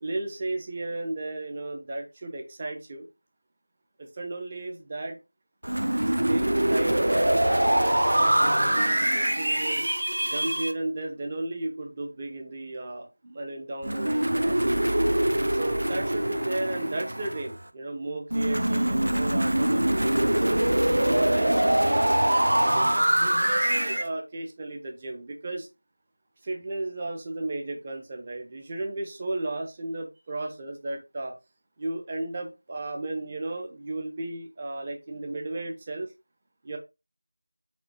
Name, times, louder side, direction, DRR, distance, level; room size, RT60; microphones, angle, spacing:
voice 1, 0.0-3.1 4.0-5.2 6.2-9.9 10.2-14.6 15.5-20.6 21.0-25.7 26.4-31.4 31.8-36.1 36.6-36.8, right 2 dB, 10° right, 2 dB, 0.4 m, -34 dB
sound 1, 5.6-10.7 13.8-17.6 18.3-24.1, right 1 dB, 70° right, 0.4 m, -24 dB
5.9 x 2.2 x 2.8 m, 0.26 s
figure-of-eight pair, 180°, 0 cm